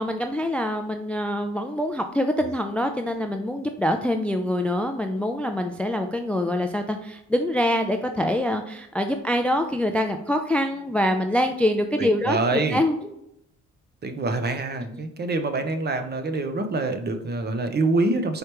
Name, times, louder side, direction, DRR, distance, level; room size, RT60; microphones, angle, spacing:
voice 1, 0.0-13.0 14.9-15.0, left 1 dB, 5° left, 6 dB, 0.3 m, -25 dB
voice 2, 12.0-12.8 14.0-18.4, right 3 dB, 35° right, 8 dB, 0.7 m, -25 dB
4.8 x 3.2 x 3.0 m, 0.79 s
cardioid pair, 90°, 30 cm